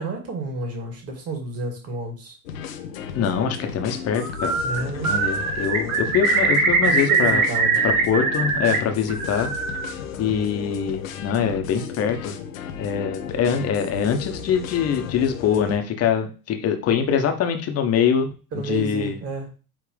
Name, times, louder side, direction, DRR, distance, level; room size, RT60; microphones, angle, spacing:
voice 1, 0.0-2.3 4.6-5.2 6.9-7.8 17.0-17.3 18.5-19.5, right 2 dB, 35° right, 2 dB, 2.4 m, -31 dB
sound 1, 2.5-15.8, left 7 dB, 65° left, 0.9 m, -35 dB
voice 2, 3.1-4.6 5.0-7.5 7.8-9.5 10.2-12.3 12.8-18.3 18.5-19.2, left 7 dB, 35° left, 6 dB, 1.2 m, -23 dB
Bird, 4.2-4.8 5.0-8.8 9.1-9.9, right 4 dB, 70° right, 1.6 m, -22 dB
8.8 x 3.3 x 3.4 m, 0.35 s
figure-of-eight pair, 80°, 43 cm